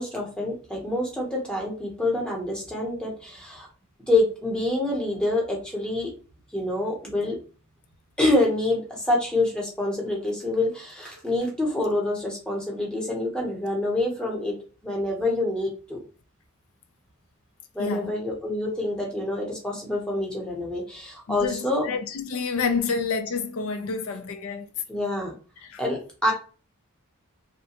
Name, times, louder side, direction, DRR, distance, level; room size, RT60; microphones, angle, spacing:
voice 1, 0.0-3.7 4.1-6.1 6.5-7.4 8.2-14.5 14.8-16.0 17.7-21.9 24.9-25.3 25.8-26.3, left 2 dB, 5° left, 0.8 m, -26 dB
voice 2, 17.8-18.1 21.3-24.7 25.6-25.8, left 5 dB, 80° left, 0.4 m, -29 dB
2.7 x 2.1 x 2.8 m
head